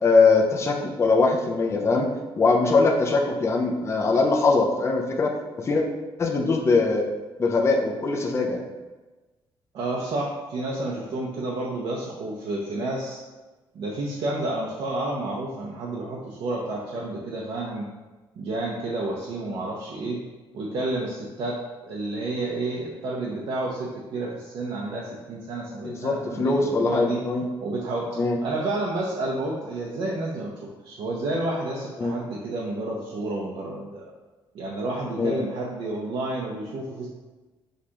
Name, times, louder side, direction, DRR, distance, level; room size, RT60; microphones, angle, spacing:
voice 1, 0.0-2.1 2.3-5.8 6.2-7.1 7.4-8.6 25.8-27.4 28.2-28.4 32.0-32.1 35.2-35.4, left 3 dB, 30° left, 0 dB, 0.5 m, -22 dB
voice 2, 9.7-13.2 13.7-17.9 18.4-20.2 20.5-27.2 27.6-28.1 28.4-34.1 34.5-37.1, right 2 dB, 65° right, -4 dB, 0.7 m, -30 dB
6.5 x 2.4 x 2.9 m, 1.2 s
cardioid pair, 120°, 10 cm